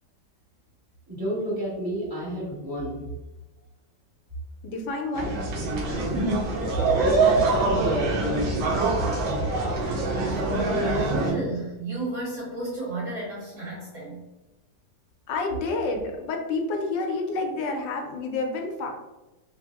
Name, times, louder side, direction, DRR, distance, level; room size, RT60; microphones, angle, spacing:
voice 1, 1.1-3.0 6.1-6.4 7.1-7.4 7.7-8.7, equal, 25° right, -9 dB, 0.5 m, -30 dB
voice 2, 4.6-5.3 15.3-18.9, left 3 dB, 75° left, 2 dB, 1.2 m, -29 dB
sound 1, 5.1-11.3, right 3 dB, 80° right, 1.6 m, -24 dB
voice 3, 9.4-10.0 10.3-14.2, right 1 dB, 55° right, -8 dB, 2.1 m, -33 dB
4.2 x 2.0 x 3.4 m, 1.1 s
omnidirectional pair, 2.1 m